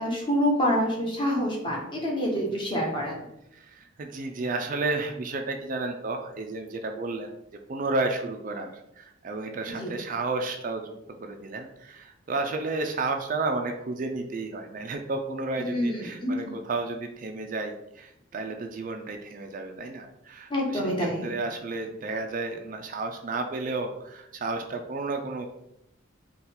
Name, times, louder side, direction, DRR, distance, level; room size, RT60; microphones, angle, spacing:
voice 1, 0.0-3.2 9.8-9.9 15.6-16.5 20.5-21.3, equal, 25° left, -2 dB, 0.9 m, -27 dB
voice 2, 3.5-7.3 7.7-10.9 11.2-25.5, right 3 dB, 40° right, 4 dB, 0.4 m, -32 dB
3.9 x 2.3 x 4.2 m, 0.82 s
head